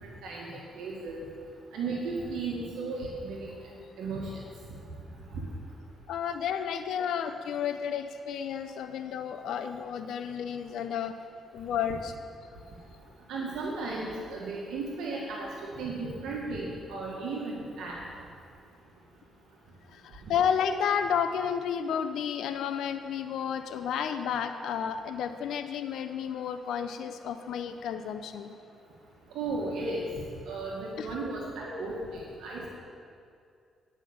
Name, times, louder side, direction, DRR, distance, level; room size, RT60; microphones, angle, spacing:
voice 1, 0.0-0.5 0.7-1.2 1.7-3.5 4.0-4.4 5.3-5.4 13.3-15.5 15.8-18.0 29.3-32.7, right 3 dB, 80° right, -3 dB, 1.5 m, -35 dB
voice 2, 6.1-11.2 11.5-12.1 19.9-28.5 31.0-31.1, left 8 dB, 75° left, 8 dB, 0.5 m, -31 dB
10.0 x 5.6 x 7.0 m, 2.4 s
cardioid pair, 90°, 0 cm